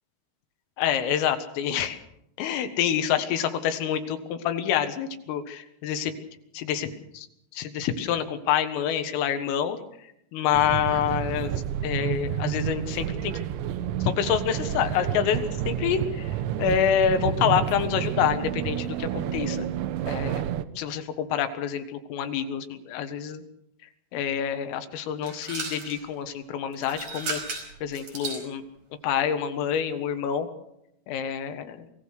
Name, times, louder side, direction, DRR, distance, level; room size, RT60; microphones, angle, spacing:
voice 1, 0.8-2.0 2.4-6.2 6.5-7.3 7.5-11.6 11.8-13.4 14.0-19.7 20.1-20.5 20.8-23.4 23.8-27.4 27.8-28.6 29.0-30.5 31.1-31.9, left 9 dB, 85° left, 8 dB, 4.2 m, -27 dB
sound 1, 10.5-20.6, right 10 dB, 75° right, 3.0 m, -30 dB
sound 2, 25.2-26.0 26.7-28.5, right 3 dB, 40° right, 6.1 m, -35 dB
25.0 x 17.0 x 6.6 m, 0.79 s
omnidirectional pair, 5.8 m